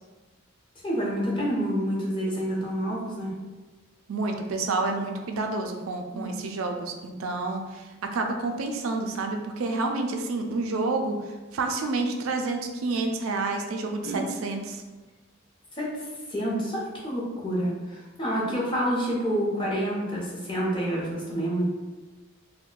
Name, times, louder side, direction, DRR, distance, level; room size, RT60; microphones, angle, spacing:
voice 1, 0.8-3.3 6.1-6.3 14.0-14.3 15.7-15.9 16.3-21.6, equal, 25° left, -5 dB, 0.7 m, -28 dB
voice 2, 4.1-11.2 11.5-14.8, right 3 dB, 80° right, 3 dB, 0.4 m, -29 dB
2.6 x 2.1 x 3.7 m, 1.2 s
head